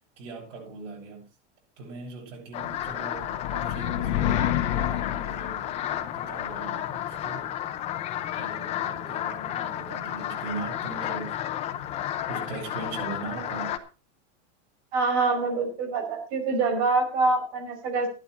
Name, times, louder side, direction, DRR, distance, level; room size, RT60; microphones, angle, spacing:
voice 1, 0.2-1.2 1.8-7.5 8.4-11.3 12.3-13.7, right 3 dB, 85° right, 8.0 m, -40 dB
sound 1, 2.5-13.8, left 11 dB, 15° left, 0.7 m, -32 dB
sound 2, 2.8-6.2, left 11 dB, 70° left, 1.4 m, -29 dB
voice 2, 14.9-18.1, right 3 dB, 40° right, 5.0 m, -25 dB
14.0 x 11.5 x 4.5 m
supercardioid pair, 180°, 36 cm